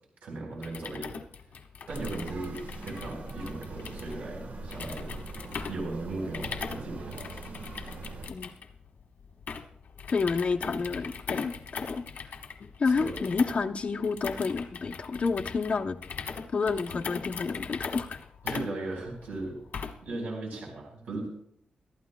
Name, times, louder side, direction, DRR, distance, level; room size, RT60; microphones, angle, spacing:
voice 1, 0.2-1.1 1.9-5.1 5.7-7.2 12.9-13.2 18.4-19.6 20.0-21.3, right 2 dB, 85° right, -1 dB, 4.2 m, -37 dB
sound 1, 0.5-20.1, left 5 dB, 75° left, 1.3 m, -40 dB
sound 2, 1.9-8.3, right 3 dB, 60° right, 1.4 m, -42 dB
voice 2, 10.1-12.0 12.8-16.0 16.5-18.2, left 4 dB, 45° left, 5 dB, 0.7 m, -29 dB
22.5 x 12.0 x 2.2 m, 0.71 s
wide cardioid pair, 115°, 3 cm